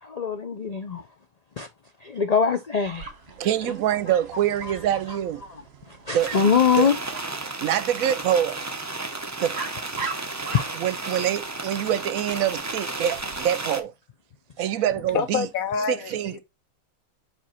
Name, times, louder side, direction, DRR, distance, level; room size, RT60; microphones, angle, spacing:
voice 1, 0.0-1.0 1.6-1.7 2.0-3.1 6.1-7.0 7.4-7.6 10.0-10.1 10.5-10.6 11.1-11.2, left 6 dB, 60° left, 0.4 m, -23 dB
Dog, 2.9-13.4, right 4 dB, 50° right, 1.3 m, -41 dB
voice 2, 3.4-5.4 6.1-6.3 6.8-6.9 7.6-8.6 9.4-9.6 10.8-13.9 14.6-15.5 15.9-16.4, right 10 dB, 75° right, 1.0 m, -25 dB
sound 1, 6.2-13.8, right 3 dB, 25° right, 0.4 m, -33 dB
voice 3, 15.1-16.4, left 6 dB, 80° left, 1.4 m, -27 dB
7.5 x 3.4 x 4.3 m
omnidirectional pair, 1.5 m